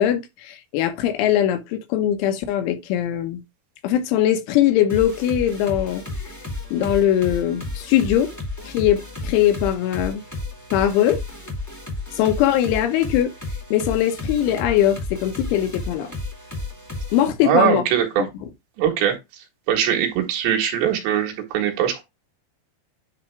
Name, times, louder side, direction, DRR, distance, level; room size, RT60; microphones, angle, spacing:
voice 1, 0.0-3.4 3.8-6.0 6.7-8.3 8.7-10.2 10.7-11.2 12.2-13.3 13.7-16.1 17.1-17.8 18.2-18.3, left 11 dB, 85° left, 3.4 m, -21 dB
sound 1, 4.9-17.3, left 2 dB, 10° left, 1.0 m, -33 dB
voice 2, 17.4-18.2 18.8-19.1 19.7-22.0, right 9 dB, 70° right, 3.7 m, -21 dB
10.0 x 3.5 x 3.3 m
omnidirectional pair, 5.4 m